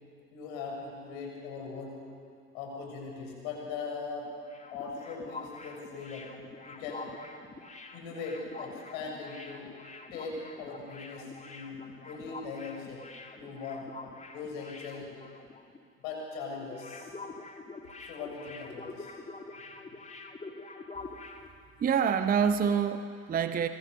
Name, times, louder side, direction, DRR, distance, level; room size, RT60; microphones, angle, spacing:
voice 1, 0.3-2.0 2.5-4.3 4.7-6.3 6.6-7.1 7.9-9.7 10.1-13.1 13.3-13.9 14.3-15.2 16.0-17.1 18.0-19.1, left 4 dB, 55° left, 0 dB, 7.3 m, -40 dB
sound 1, 4.2-15.8 16.0-16.2 16.5-21.5, left 3 dB, 15° left, 2.0 m, -46 dB
voice 2, 21.8-23.7, right 7 dB, 20° right, 10 dB, 0.8 m, -26 dB
25.0 x 23.0 x 6.7 m, 2.3 s
figure-of-eight pair, 70°, 49 cm